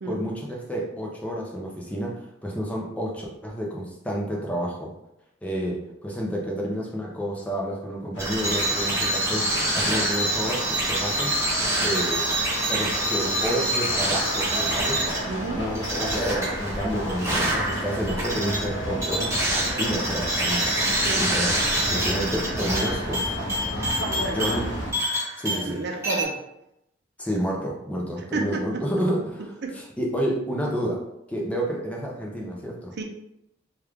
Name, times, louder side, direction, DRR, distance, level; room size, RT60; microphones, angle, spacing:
voice 1, 0.0-4.9 5.4-11.3 11.8-12.2 12.7-15.0 15.5-20.9 21.2-21.5 21.9-23.3 24.1-25.0 25.4-25.8 27.2-31.0 31.3-32.9, equal, 5° left, -2 dB, 0.6 m, -30 dB
sound 1, 8.1-24.9, equal, 70° left, 0.9 m, -33 dB
sound 2, 8.2-25.8 26.0-26.2, right 1 dB, 15° right, 1.0 m, -26 dB
voice 2, 15.3-15.6 21.0-21.2 23.8-24.5 25.5-26.4 28.3-28.8 29.6-29.7 33.0-33.1, right 3 dB, 60° right, 3 dB, 0.5 m, -31 dB
3.1 x 2.4 x 3.4 m, 0.83 s
head